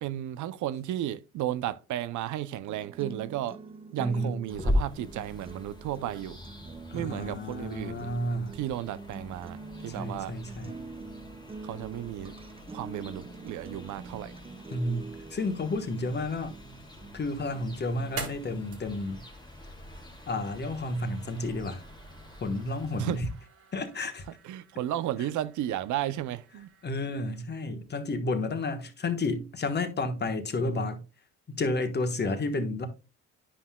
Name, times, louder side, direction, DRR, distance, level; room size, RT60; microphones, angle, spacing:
voice 1, 0.0-3.6 3.9-6.4 6.9-8.1 8.6-10.3 11.6-12.3 12.7-14.3 23.0-23.2 24.5-26.7, right 12 dB, 75° right, 0.5 m, -33 dB
sound 1, 2.7-18.7, right 4 dB, 20° right, 0.5 m, -45 dB
voice 2, 4.0-4.4 6.9-8.6 10.0-10.8 14.7-16.5 17.1-19.2 20.3-21.8 22.4-23.3 23.7-24.2 25.2-25.3 26.8-31.0 31.5-32.9, left 2 dB, 35° left, 1.2 m, -31 dB
sound 2, 4.5-23.2, left 1 dB, 15° left, 1.2 m, -40 dB
sound 3, 16.5-27.4, right 4 dB, 50° right, 1.7 m, -48 dB
9.9 x 5.5 x 2.2 m
cardioid pair, 90°, 30 cm